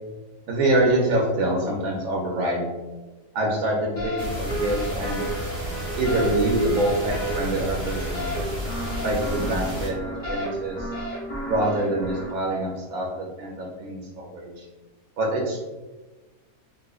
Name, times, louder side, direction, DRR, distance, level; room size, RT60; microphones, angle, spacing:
voice 1, 0.5-2.7 3.3-5.3 6.0-8.5 9.0-10.9 11.5-14.6 15.2-15.6, right 1 dB, 70° right, -1 dB, 1.0 m, -25 dB
sound 1, 4.0-12.3, equal, 40° left, 0.7 m, -32 dB
sound 2, 4.2-9.9, equal, 40° right, 0.9 m, -32 dB
4.0 x 2.4 x 2.3 m, 1.2 s
omnidirectional pair, 1.7 m